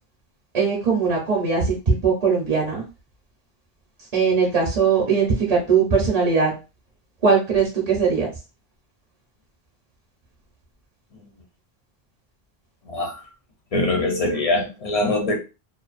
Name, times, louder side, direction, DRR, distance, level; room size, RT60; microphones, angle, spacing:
voice 1, 0.5-2.8 4.1-6.5 7.2-8.3, right 5 dB, 40° right, -2 dB, 0.7 m, -20 dB
voice 2, 12.8-13.2 13.7-15.4, left 2 dB, 45° left, 2 dB, 0.6 m, -23 dB
2.5 x 2.2 x 2.4 m, 0.29 s
omnidirectional pair, 1.1 m